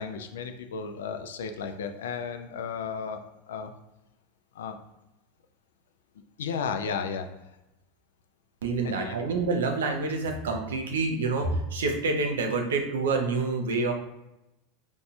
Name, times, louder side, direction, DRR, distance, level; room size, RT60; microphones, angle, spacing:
voice 1, 0.0-3.7 4.5-4.8 6.4-7.3 8.8-9.2, left 6 dB, 80° left, 7 dB, 0.4 m, -34 dB
voice 2, 8.6-13.9, right 3 dB, 85° right, 3 dB, 0.5 m, -27 dB
4.0 x 2.6 x 2.3 m, 0.92 s
hypercardioid pair, 95°, 0 cm